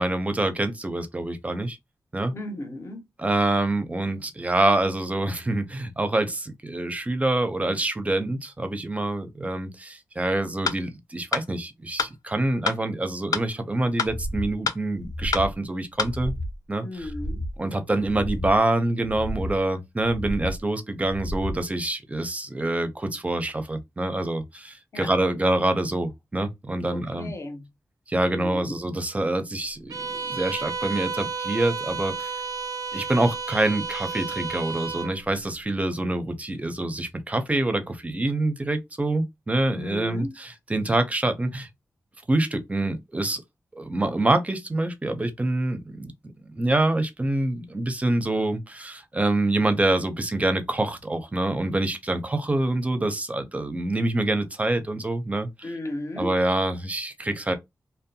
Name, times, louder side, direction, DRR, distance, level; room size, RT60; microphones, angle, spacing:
voice 1, 0.0-1.8 2.1-2.3 3.2-16.3 16.7-17.1 17.6-27.3 28.1-32.4 32.9-41.7 42.3-43.4 43.7-46.1 46.4-55.7 56.2-57.6, right 2 dB, 20° right, 0.5 m, -26 dB
voice 2, 2.3-3.1 16.8-17.4 24.9-25.1 26.9-27.7 28.2-28.7 39.7-40.3 55.6-56.3, left 1 dB, 45° left, 0.7 m, -34 dB
sound 1, 10.6-10.8 11.3-11.5 12.0-12.1 12.7-12.8 13.3-13.4 14.0-14.1 14.7-14.8 15.3-15.5 16.0-16.1, left 5 dB, 70° left, 0.3 m, -25 dB
sound 2, 14.0-14.5 14.9-15.5 16.0-16.6 17.0-17.6 18.0-18.6 19.0-19.6 20.0-20.6 21.0-21.6, equal, 90° left, 0.7 m, -32 dB
Bowed string instrument, 29.9-35.2, right 5 dB, 80° right, 0.4 m, -32 dB
2.6 x 2.1 x 2.6 m
wide cardioid pair, 80°, 6 cm